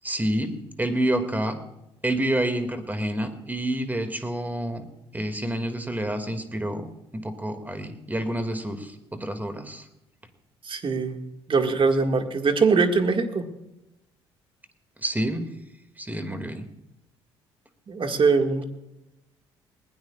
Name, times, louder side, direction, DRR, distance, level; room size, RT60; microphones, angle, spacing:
voice 1, 0.0-1.6 2.0-4.9 5.1-9.8 15.0-15.5 16.0-16.7, right 1 dB, 15° right, 8 dB, 2.2 m, -28 dB
voice 2, 10.7-11.2 11.5-13.4 17.9-18.6, right 4 dB, 40° right, 5 dB, 1.9 m, -22 dB
20.5 x 16.5 x 2.4 m, 0.90 s
hypercardioid pair, 50°, 14 cm